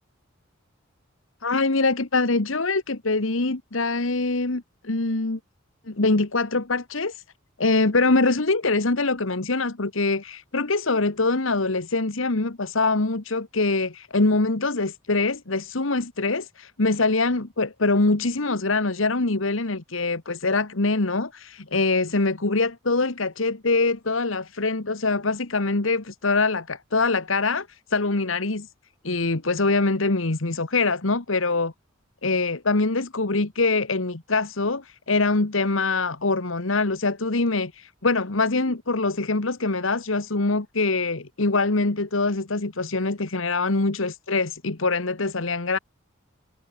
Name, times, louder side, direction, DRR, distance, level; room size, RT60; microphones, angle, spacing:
voice 1, 1.4-5.4 5.9-7.2 7.6-28.7 29.0-31.7 32.2-45.8, left 3 dB, 75° left, 1.6 m, -24 dB
head